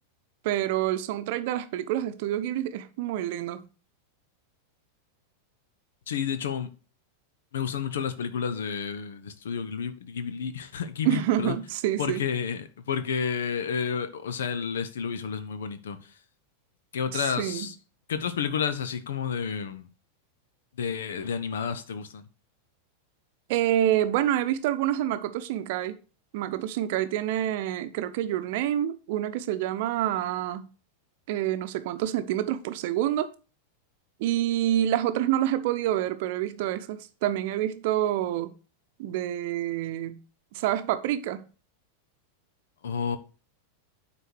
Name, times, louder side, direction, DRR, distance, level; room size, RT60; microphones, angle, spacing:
voice 1, 0.4-3.6 11.0-12.2 17.1-17.7 23.5-26.0 26.3-30.6 31.3-33.3 34.2-38.5 39.0-40.2 40.5-41.4, right 12 dB, 50° right, 0.9 m, -27 dB
voice 2, 6.1-6.7 7.5-11.6 12.0-16.2 16.9-17.8 18.1-19.9 20.8-22.2 42.8-43.2, left 7 dB, 60° left, 1.0 m, -31 dB
9.2 x 4.3 x 6.3 m
figure-of-eight pair, 90°, 0 cm